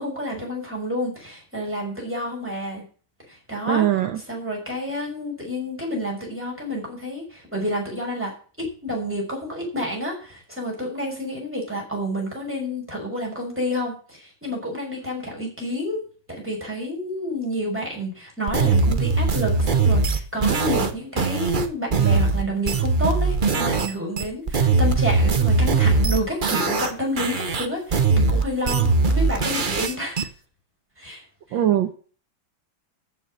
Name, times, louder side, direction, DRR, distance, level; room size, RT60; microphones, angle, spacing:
voice 1, 0.0-2.8 3.3-3.9 4.3-16.0 16.3-30.3 31.0-31.2 31.5-31.6, equal, 5° right, -2 dB, 5.9 m, -29 dB
voice 2, 3.7-4.2 31.5-31.9, right 11 dB, 70° right, 7 dB, 1.7 m, -21 dB
sound 1, 18.5-23.9 24.2-26.9 27.2-30.2, right 4 dB, 35° right, 0.8 m, -20 dB
14.5 x 5.9 x 7.6 m, 0.40 s
omnidirectional pair, 2.2 m